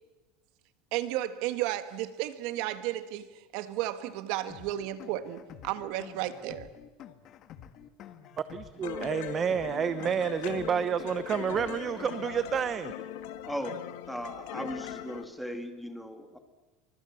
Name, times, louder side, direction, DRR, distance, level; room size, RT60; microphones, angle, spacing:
voice 1, 0.9-6.7, right 14 dB, 55° right, 12 dB, 1.6 m, -33 dB
sound 1, 4.5-12.5, left 9 dB, 35° left, 1.6 m, -50 dB
voice 2, 8.5-12.9, right 7 dB, 25° right, 13 dB, 0.9 m, -29 dB
sound 2, 8.8-15.3, left 12 dB, 75° left, 1.8 m, -40 dB
voice 3, 13.4-16.4, equal, ahead, 7 dB, 2.1 m, -38 dB
28.5 x 24.5 x 7.3 m, 1.2 s
supercardioid pair, 160°, 0 cm